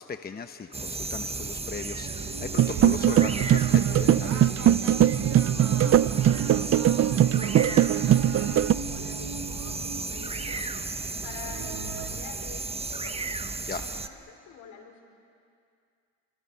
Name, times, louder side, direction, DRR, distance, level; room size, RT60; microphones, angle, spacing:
voice 1, 0.0-4.8 13.7-13.8, left 5 dB, 30° left, 7 dB, 1.0 m, -37 dB
sound 1, 0.7-14.1, right 3 dB, 20° right, 1.1 m, -35 dB
sound 2, 2.0-12.1, right 4 dB, 90° right, 4.1 m, -39 dB
sound 3, 2.6-8.7, right 11 dB, 50° right, 0.6 m, -21 dB
voice 2, 6.1-13.3 13.9-15.0, left 6 dB, 80° left, 1 dB, 5.0 m, -48 dB
29.5 x 25.5 x 5.7 m, 2.3 s
cardioid pair, 90°, 30 cm